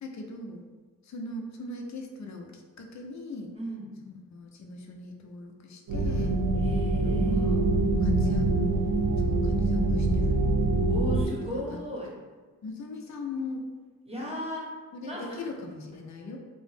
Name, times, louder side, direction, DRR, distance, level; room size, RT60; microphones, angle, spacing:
voice 1, 0.0-0.6 1.1-3.5 4.1-6.4 7.3-7.6 8.0-8.5 9.3-10.5 11.4-11.8 12.6-13.7 14.9-16.4, left 3 dB, 55° left, 2 dB, 0.5 m, -40 dB
voice 2, 3.5-3.9 6.6-7.5 10.9-12.1 14.0-15.4, equal, 15° right, -4 dB, 0.9 m, -36 dB
sound 1, 5.9-11.2, right 2 dB, 80° right, 0.5 m, -24 dB
3.0 x 2.0 x 3.2 m, 1.4 s
cardioid pair, 60°, 35 cm